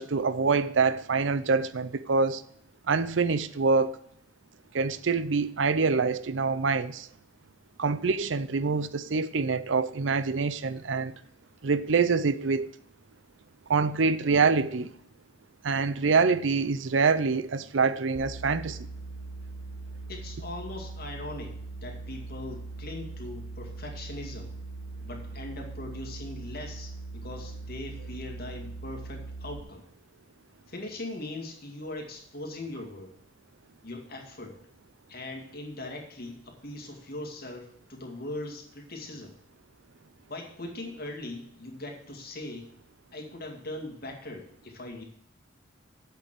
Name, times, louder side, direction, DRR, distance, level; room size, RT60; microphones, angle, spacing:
voice 1, 0.0-2.4 2.9-4.0 4.7-7.1 7.8-11.1 11.6-12.7 13.7-14.9 15.6-18.8, right 4 dB, 75° right, 0.6 m, -25 dB
sound 1, 18.1-29.6, right 3 dB, 90° left, 2.9 m, -40 dB
voice 2, 20.1-24.5 25.0-29.8 30.7-33.1 33.8-34.6 35.1-39.3 40.3-42.7 43.1-45.0, left 2 dB, 50° left, 2.3 m, -40 dB
8.0 x 6.8 x 7.6 m
head